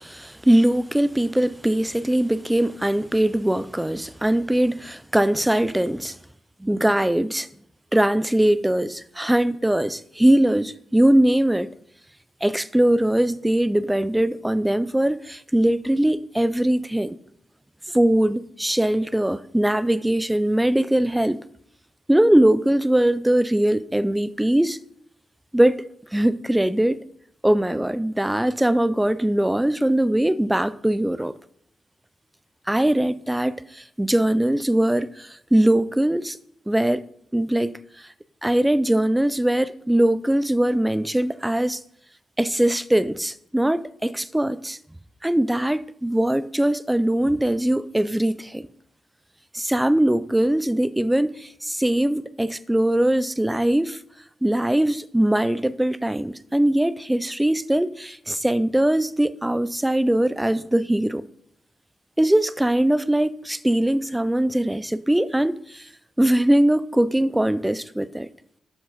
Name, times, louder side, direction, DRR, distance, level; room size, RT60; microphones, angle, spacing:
voice 1, 0.0-6.2 6.6-7.5 7.9-11.7 12.4-17.2 17.9-21.4 22.1-24.8 25.5-25.8 26.1-27.0 27.4-31.4 32.7-36.4 36.7-37.0 37.3-37.7 38.4-41.8 42.4-44.8 45.2-48.7 49.5-54.0 54.4-61.2 62.2-65.9 66.2-68.3, right 1 dB, 5° right, 0.4 m, -21 dB
12.5 x 6.3 x 5.0 m
wide cardioid pair, 140°, 0 cm